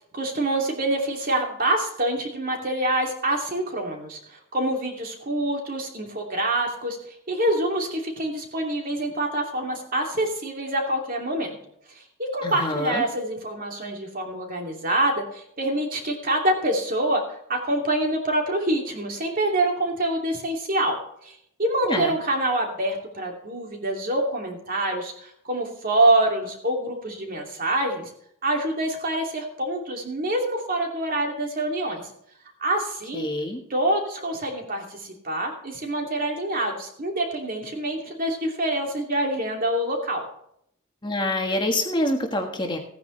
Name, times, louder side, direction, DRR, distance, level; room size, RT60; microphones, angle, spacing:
voice 1, 0.1-7.0 7.3-11.5 12.2-21.0 21.2-28.1 28.4-32.1 32.6-33.3 33.7-40.2, right 1 dB, 40° right, 2 dB, 2.7 m, -26 dB
voice 2, 12.4-13.0 21.8-22.1 33.1-33.6 41.0-42.8, left 1 dB, 20° left, 3 dB, 1.5 m, -26 dB
15.5 x 9.7 x 3.3 m, 0.70 s
head